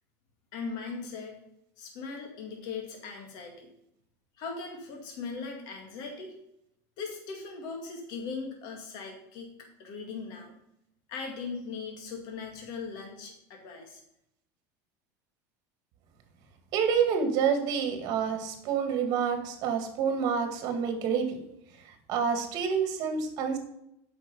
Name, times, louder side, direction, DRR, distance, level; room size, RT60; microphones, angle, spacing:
voice 1, 0.5-1.4 1.8-3.7 4.4-6.3 7.0-9.5 9.8-10.5 11.1-14.0, left 4 dB, 55° left, 1 dB, 2.2 m, -39 dB
voice 2, 16.7-21.4 22.1-23.6, right 6 dB, 45° right, 6 dB, 2.0 m, -28 dB
8.5 x 5.9 x 5.4 m, 0.78 s
supercardioid pair, 150°, 9 cm